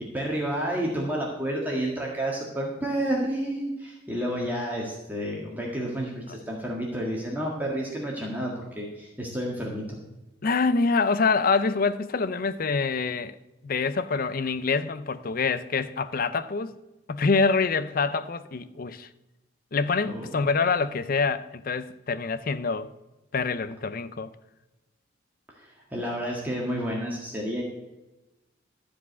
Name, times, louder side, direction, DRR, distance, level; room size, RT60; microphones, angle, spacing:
voice 1, 0.1-10.0 20.1-20.3 25.5-27.6, right 1 dB, 10° right, 1.7 m, -30 dB
voice 2, 10.4-13.4 13.6-16.8 17.1-19.1 19.7-22.9 23.3-24.3, left 4 dB, 50° left, 0.5 m, -26 dB
13.0 x 5.0 x 8.1 m
head